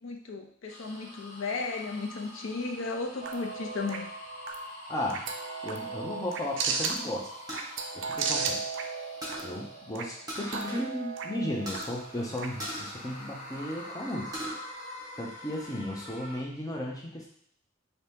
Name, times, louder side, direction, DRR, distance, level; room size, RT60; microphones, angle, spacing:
voice 1, 0.0-4.1, left 3 dB, 75° left, 2 dB, 0.5 m, -35 dB
sound 1, 0.7-10.6 11.1-16.4, left 1 dB, 40° left, 0.9 m, -46 dB
sound 2, 3.2-12.8, right 5 dB, 60° right, 0.4 m, -36 dB
voice 2, 4.9-5.2 5.6-7.3 8.0-8.6 9.4-14.3 15.2-17.3, left 1 dB, 15° left, -1 dB, 0.6 m, -35 dB
sound 3, 7.5-8.8 9.2-9.6 10.3-10.9 11.2-11.3 11.7-11.9 12.6-13.7 14.1-14.6 15.0-15.8, equal, 20° right, 0.7 m, -39 dB
2.8 x 2.7 x 3.4 m, 0.66 s
head